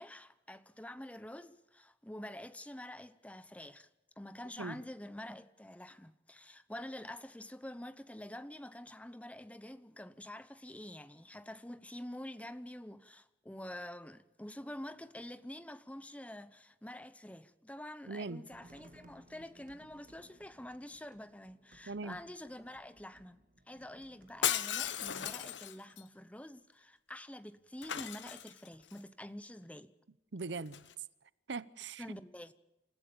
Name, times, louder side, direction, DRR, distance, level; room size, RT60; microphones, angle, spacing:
voice 1, 0.0-3.9 4.2-29.9 32.0-32.5, left 1 dB, 5° left, 0.8 m, -47 dB
voice 2, 18.1-18.4 21.9-22.2 30.3-30.8 31.5-32.2, right 3 dB, 70° right, 0.7 m, -40 dB
sound 1, 18.5-25.4, right 1 dB, 50° right, 1.7 m, -62 dB
Shatter, 24.4-26.0 27.8-28.9 30.7-30.9, left 10 dB, 80° left, 0.9 m, -36 dB
28.0 x 15.5 x 7.0 m
head